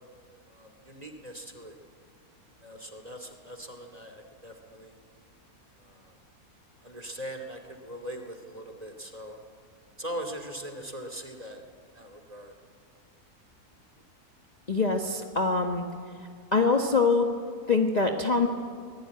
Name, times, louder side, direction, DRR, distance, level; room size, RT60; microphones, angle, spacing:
voice 1, 0.5-1.8 2.6-5.0 5.8-6.2 6.8-9.4 10.0-11.6 11.9-12.5, right 1 dB, 25° right, 4 dB, 2.5 m, -41 dB
voice 2, 14.7-15.8 16.5-17.3 17.7-18.5, left 4 dB, 30° left, 2 dB, 1.3 m, -24 dB
24.5 x 19.5 x 9.6 m, 2.1 s
omnidirectional pair, 1.6 m